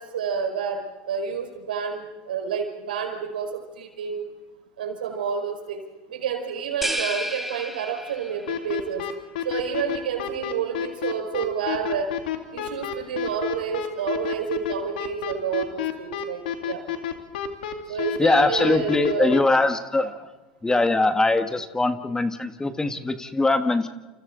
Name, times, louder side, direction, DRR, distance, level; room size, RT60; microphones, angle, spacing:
voice 1, 0.0-4.3 4.8-5.8 6.1-9.1 9.4-12.1 12.5-16.8 17.9-19.4 20.0-20.1, right 6 dB, 90° right, 4 dB, 4.9 m, -29 dB
sound 1, 6.8-8.5, right 1 dB, 5° right, 2.6 m, -31 dB
sound 2, 8.5-19.4, left 9 dB, 80° left, 2.5 m, -29 dB
voice 2, 18.2-20.1 20.6-23.9, left 2 dB, 15° left, 8 dB, 1.6 m, -22 dB
29.5 x 29.0 x 4.0 m, 1.2 s
hypercardioid pair, 90°, 5 cm